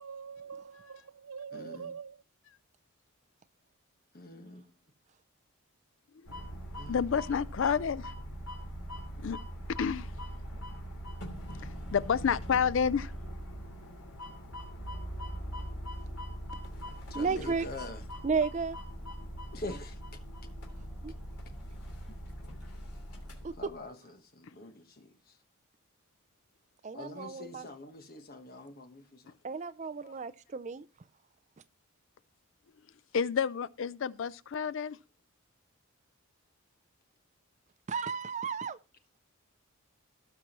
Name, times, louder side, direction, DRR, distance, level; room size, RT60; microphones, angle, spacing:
voice 1, 0.0-2.2, right 6 dB, 85° right, 0.6 m, -44 dB
voice 2, 1.5-1.9 4.1-4.6 6.7-7.1 10.5-10.6 17.1-18.0 19.5-20.0 23.6-25.1 26.9-29.3 30.0-30.2, left 2 dB, 40° left, 1.2 m, -45 dB
sound 1, 6.3-23.7, equal, 85° left, 3.1 m, -42 dB
voice 3, 6.9-8.1 9.2-9.4 9.8-10.1 11.6-13.1 33.1-35.0, left 7 dB, 55° left, 0.4 m, -29 dB
voice 4, 17.1-17.7 18.2-18.8 21.0-21.1 23.4-23.6 26.8-27.7 29.4-30.9 37.9-38.8, right 5 dB, 30° right, 0.4 m, -33 dB
18.0 x 6.0 x 2.9 m
head